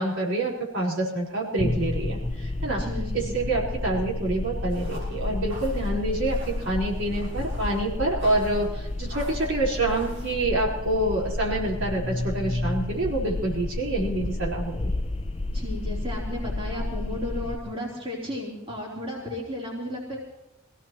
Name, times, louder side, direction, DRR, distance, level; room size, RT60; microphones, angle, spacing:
voice 1, 0.0-2.8 3.1-14.9, right 2 dB, 70° right, -4 dB, 4.4 m, -27 dB
sound 1, 1.6-17.6, left 2 dB, 30° left, 0.5 m, -31 dB
voice 2, 2.7-3.3 15.5-20.2, left 1 dB, 30° right, -4 dB, 3.5 m, -34 dB
sound 2, 4.7-10.3, right 1 dB, 85° right, 6.5 m, -46 dB
23.5 x 17.0 x 3.1 m, 0.93 s
head